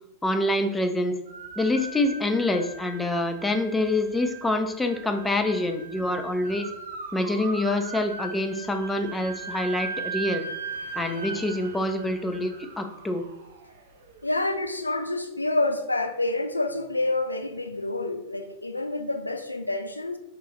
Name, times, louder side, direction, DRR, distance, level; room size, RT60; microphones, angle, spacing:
voice 1, 0.2-1.2 1.6-6.7 7.1-10.5 11.0-13.2, left 1 dB, 10° left, 5 dB, 0.4 m, -26 dB
sound 1, 1.3-14.3, right 4 dB, 65° right, 0.4 m, -39 dB
voice 2, 14.2-20.2, left 2 dB, 85° left, 7 dB, 0.3 m, -28 dB
2.9 x 2.3 x 3.7 m, 0.92 s
figure-of-eight pair, 90°, 0 cm